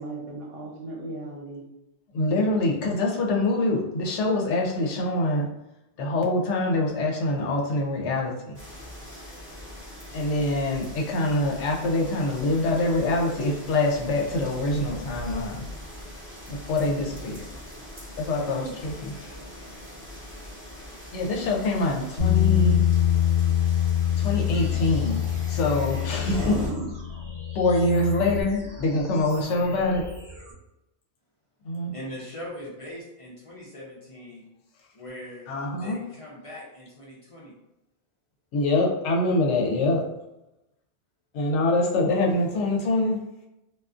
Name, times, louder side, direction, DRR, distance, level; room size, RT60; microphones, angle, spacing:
voice 1, 0.0-1.7 26.1-26.9, right 3 dB, 60° right, -3 dB, 0.9 m, -36 dB
voice 2, 2.1-5.5 6.0-8.6 10.1-15.7 16.5-17.4 18.2-19.3 21.1-22.8 24.2-25.2 25.5-26.6 27.5-30.0 31.6-31.9 35.5-36.0 38.5-40.0 41.3-43.2, left 2 dB, 90° left, 0 dB, 0.9 m, -25 dB
sound 1, 8.5-26.7, equal, 15° right, 0.7 m, -40 dB
voice 3, 18.3-18.8 31.9-34.4 34.9-37.5, equal, 40° left, -5 dB, 0.5 m, -41 dB
Bass guitar, 22.2-28.4, left 10 dB, 60° left, 0.9 m, -24 dB
sound 2, 24.5-30.5, equal, 35° right, 0.3 m, -43 dB
2.4 x 2.3 x 2.4 m, 0.90 s
omnidirectional pair, 1.2 m